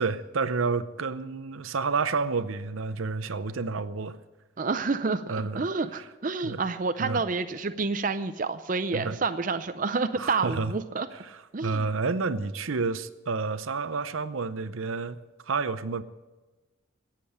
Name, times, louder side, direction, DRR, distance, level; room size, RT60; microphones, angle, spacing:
voice 1, 0.0-4.2 5.3-5.6 6.4-6.6 7.0-7.2 8.9-9.2 10.2-10.7 11.3-15.2 15.5-16.0, right 4 dB, 80° right, 13 dB, 0.7 m, -30 dB
voice 2, 4.6-11.1 11.5-11.9, right 4 dB, 40° right, 10 dB, 0.5 m, -29 dB
17.0 x 7.5 x 8.0 m, 1.2 s
head